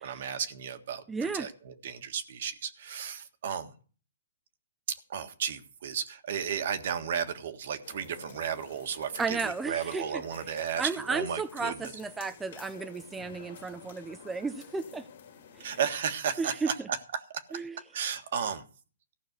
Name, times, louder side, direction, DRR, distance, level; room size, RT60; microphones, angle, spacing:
voice 1, 0.0-3.7 4.9-11.9 15.6-17.6 17.9-18.6, right 7 dB, 55° right, 1.6 m, -34 dB
voice 2, 1.1-1.5 9.2-10.2 10.8-15.1 15.6-15.8 16.4-16.9 17.5-17.8, right 4 dB, 10° right, 0.5 m, -34 dB
sound 1, 7.8-16.0, left 7 dB, 60° left, 2.2 m, -50 dB
15.0 x 6.0 x 8.0 m
hypercardioid pair, 150°, 0 cm